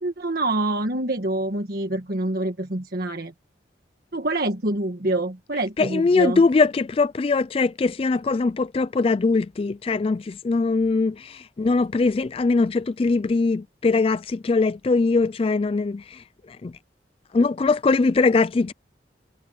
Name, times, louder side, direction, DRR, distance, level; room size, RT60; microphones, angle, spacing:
voice 1, 0.0-3.3 4.1-6.4, right 2 dB, 55° right, 1.5 m, -26 dB
voice 2, 5.8-16.7 17.3-18.7, left 3 dB, 30° left, 0.3 m, -21 dB
head